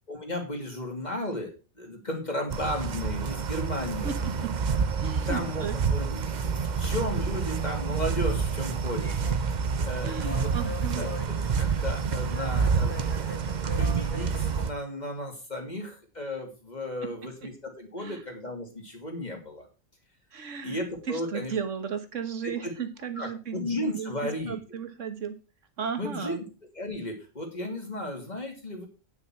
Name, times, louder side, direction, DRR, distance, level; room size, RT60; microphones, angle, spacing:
voice 1, 0.1-1.5 1.8-4.1 5.0-9.3 9.8-10.5 11.0-11.2 11.6-12.9 13.5-19.7 20.6-21.5 22.4-22.7 23.2-24.5 26.0-26.4 26.7-28.9, left 1 dB, 30° left, 2 dB, 2.7 m, -34 dB
sound 1, 2.5-14.7, right 5 dB, 45° right, 0.6 m, -28 dB
voice 2, 5.0-5.8 10.0-11.0 17.0-17.1 18.0-18.2 20.3-20.8 21.1-23.6 23.9-24.1 24.5-25.3 25.8-26.4, right 6 dB, 65° right, 9 dB, 1.6 m, -35 dB
sound 2, 9.0-14.6, left 1 dB, 10° left, 1.1 m, -43 dB
9.8 x 6.1 x 5.9 m, 0.32 s
omnidirectional pair, 1.4 m